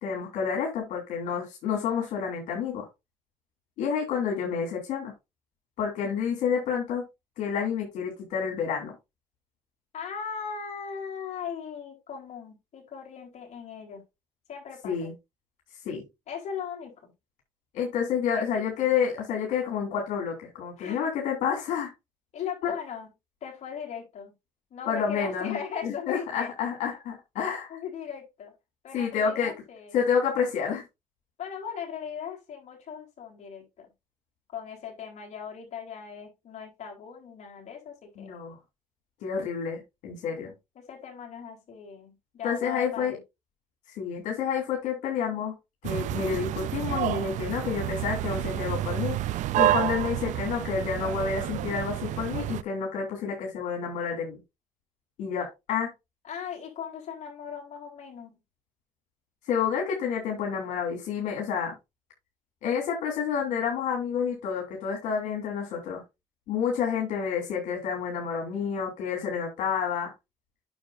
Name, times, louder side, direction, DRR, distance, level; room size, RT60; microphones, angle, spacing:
voice 1, 0.0-2.9 3.8-5.1 5.8-7.0 7.4-8.9 14.8-15.1 15.8-16.0 17.7-21.9 22.6-22.7 24.9-27.7 28.9-29.5 29.9-30.8 38.2-38.6 39.2-40.5 42.4-43.2 44.0-45.5 45.8-49.2 49.5-54.4 55.2-55.9 59.5-61.7 62.6-66.0 66.5-70.1, left 7 dB, 85° left, 3.1 m, -29 dB
voice 2, 9.9-14.0 14.5-15.1 16.3-17.1 18.4-18.9 20.8-21.1 22.3-23.1 23.4-24.3 24.7-26.5 27.7-28.5 28.8-30.0 31.4-33.9 34.5-38.3 40.2-43.2 56.2-58.4, left 7 dB, 65° left, 3.9 m, -39 dB
sound 1, 45.8-52.6, right 13 dB, 80° right, 0.5 m, -29 dB
9.4 x 6.6 x 2.6 m
cardioid pair, 80°, 13 cm